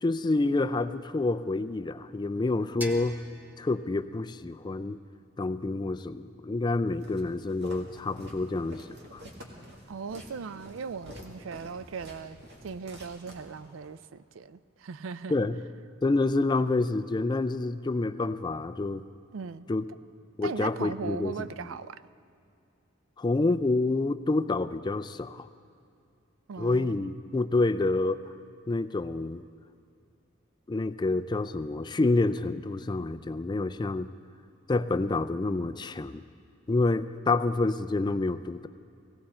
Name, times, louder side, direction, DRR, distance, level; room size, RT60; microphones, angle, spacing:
voice 1, 0.0-3.2 3.6-5.0 5.4-8.9 9.1-9.2 15.3-15.6 16.0-19.0 19.7-19.8 20.4-21.5 23.2-25.5 26.6-28.2 28.7-29.4 30.7-34.1 34.7-36.2 36.7-38.7, left 2 dB, 20° left, 12 dB, 0.4 m, -28 dB
sound 1, 2.8-5.6, equal, 10° right, 0.8 m, -46 dB
Walk footsteps, 7.0-13.9, equal, 60° right, 2.1 m, -48 dB
voice 2, 9.9-15.4 19.3-19.7 20.4-22.0 26.5-27.1, right 5 dB, 75° right, 15 dB, 0.4 m, -38 dB
18.0 x 17.0 x 4.4 m, 2.5 s
head